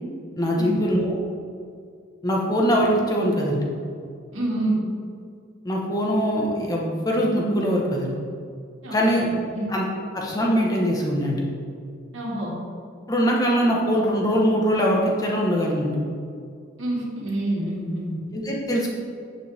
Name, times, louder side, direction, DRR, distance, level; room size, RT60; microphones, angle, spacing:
voice 1, 0.3-1.1 2.2-3.6 5.6-8.1 8.9-9.3 9.7-9.8 10.1-11.4 13.1-15.9 18.3-18.9, equal, 20° left, -2 dB, 1.4 m, -22 dB
voice 2, 4.3-4.8 8.8-9.7 12.1-12.5 16.8-18.2, right 1 dB, 80° right, -4 dB, 2.3 m, -27 dB
9.3 x 7.7 x 3.6 m, 2.3 s
head